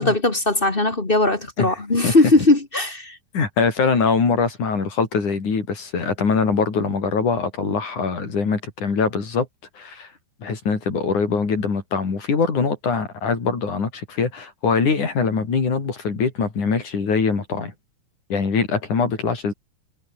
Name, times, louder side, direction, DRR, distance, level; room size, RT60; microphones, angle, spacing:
voice 1, 0.0-3.2, left 2 dB, 20° left, 1.8 m, -19 dB
voice 2, 3.3-9.5 9.8-10.1 10.4-17.7 18.3-19.5, left 5 dB, 80° left, 6.1 m, -22 dB
omnidirectional pair, 3.5 m